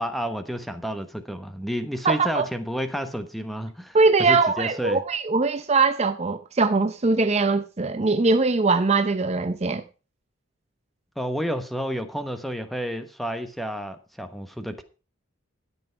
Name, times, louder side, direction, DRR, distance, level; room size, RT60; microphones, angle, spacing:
voice 1, 0.0-5.0 11.2-14.8, equal, ahead, 1.1 m, -30 dB
voice 2, 2.0-2.5 3.9-9.8, right 3 dB, 30° right, 0.6 m, -21 dB
13.0 x 8.1 x 4.5 m
head